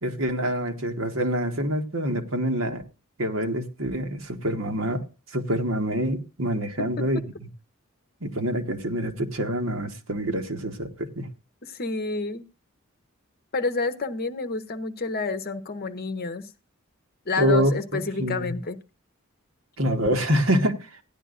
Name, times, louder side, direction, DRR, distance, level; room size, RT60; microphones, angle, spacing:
voice 1, 0.0-2.8 3.2-7.2 8.2-11.3 17.4-17.7 18.2-18.5 19.8-20.9, equal, 65° right, 1.4 m, -26 dB
voice 2, 11.6-12.4 13.5-16.4 17.3-18.8, left 3 dB, 45° left, 1.0 m, -29 dB
16.0 x 10.5 x 2.5 m
head